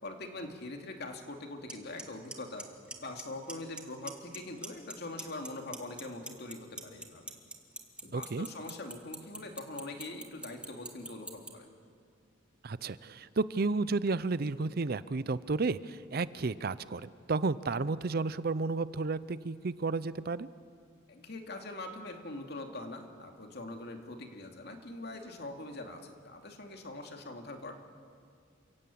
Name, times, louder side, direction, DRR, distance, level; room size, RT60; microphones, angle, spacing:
voice 1, 0.0-2.7 3.0-7.3 8.0-11.7 21.1-27.8, left 2 dB, 55° left, 4 dB, 2.5 m, -43 dB
Clock, 1.7-1.8 2.0-2.3 2.6-3.2 3.5-3.8 4.1-4.9 5.2-11.5, right 2 dB, 5° right, 1.7 m, -40 dB
voice 2, 8.1-8.5 12.6-20.5, right 3 dB, 50° right, 16 dB, 0.6 m, -32 dB
29.0 x 16.5 x 8.7 m, 2.2 s
head